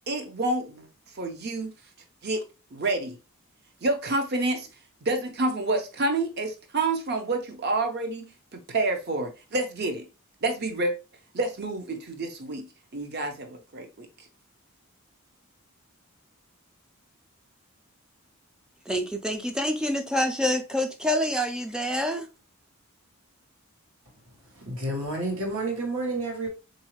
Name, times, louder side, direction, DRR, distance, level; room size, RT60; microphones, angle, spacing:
voice 1, 0.1-0.9 1.2-1.7 2.2-2.4 2.7-3.2 3.8-4.7 5.0-10.1 10.4-10.9 11.3-12.7 12.9-14.1, right 2 dB, 45° right, 0.7 m, -28 dB
voice 2, 18.9-22.3, left 1 dB, 5° right, 0.4 m, -27 dB
voice 3, 24.4-26.5, right 2 dB, 65° right, 1.3 m, -30 dB
3.9 x 2.7 x 3.0 m
head